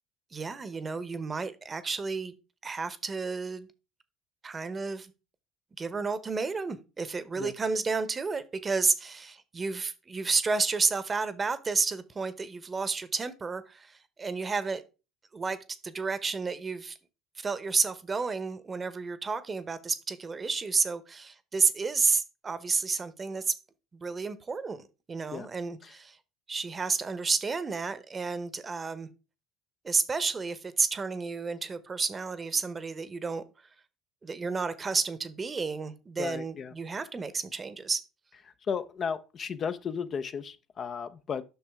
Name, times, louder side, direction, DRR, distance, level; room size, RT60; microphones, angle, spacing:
voice 1, 0.3-2.3 2.6-3.7 4.4-5.1 5.8-14.8 15.3-15.6 15.8-17.0 17.4-23.5 23.9-26.2 26.5-29.1 29.8-33.4 34.2-38.0, right 4 dB, 30° right, 0.9 m, -31 dB
voice 2, 36.2-36.7 38.7-41.4, left 6 dB, 40° left, 0.6 m, -34 dB
8.1 x 5.9 x 3.5 m
hypercardioid pair, 75°, 0 cm